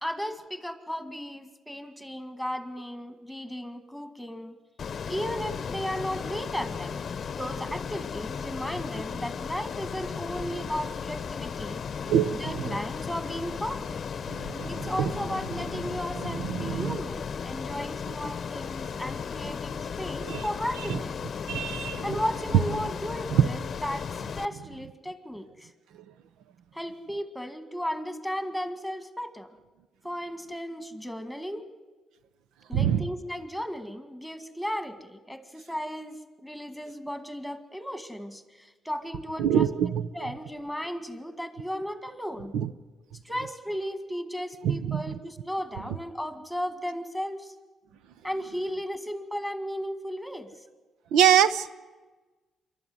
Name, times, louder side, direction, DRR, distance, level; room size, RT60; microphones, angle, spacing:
voice 1, 0.0-4.6 5.1-7.0 7.4-11.8 12.3-14.0 14.7-21.2 22.0-24.1 24.3-25.7 26.7-29.5 30.0-31.7 32.7-42.6 43.2-47.5 48.2-50.5, equal, ahead, 9 dB, 2.0 m, -35 dB
Ocean, 4.8-24.4, left 6 dB, 50° left, 0.7 m, -35 dB
voice 2, 12.1-12.6 14.3-15.1 16.2-17.0 20.2-20.4 20.9-21.0 21.5-22.0 23.3-23.5 32.7-33.0 39.4-40.1 42.5-42.7 44.6-45.0 51.1-51.7, right 9 dB, 90° right, 14 dB, 0.7 m, -24 dB
26.5 x 12.0 x 9.6 m, 1.3 s
cardioid pair, 90°, 0 cm